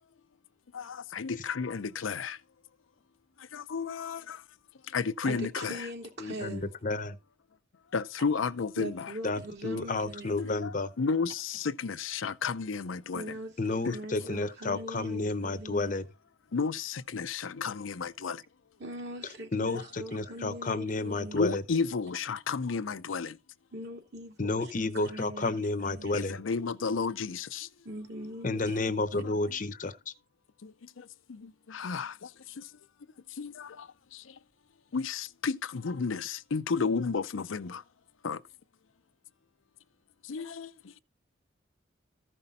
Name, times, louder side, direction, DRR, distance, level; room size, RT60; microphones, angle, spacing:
voice 1, 0.7-2.4 3.5-4.4 4.9-5.8 7.9-9.1 10.4-13.3 13.9-14.0 16.5-18.4 21.3-23.4 26.1-27.7 30.6-32.3 32.6-32.7 33.4-34.2 34.9-37.8 38.2-38.4 40.3-40.7, left 5 dB, 85° left, 0.6 m, -32 dB
voice 2, 5.2-6.7 8.8-10.5 13.1-15.9 18.8-21.4 23.7-26.2 26.9-27.0 27.8-29.2, right 1 dB, 60° right, 2.6 m, -42 dB
voice 3, 6.2-7.2 9.2-10.9 13.6-16.0 19.5-21.6 24.4-26.4 28.4-30.1, left 3 dB, 40° left, 0.8 m, -31 dB
14.5 x 5.5 x 4.1 m
head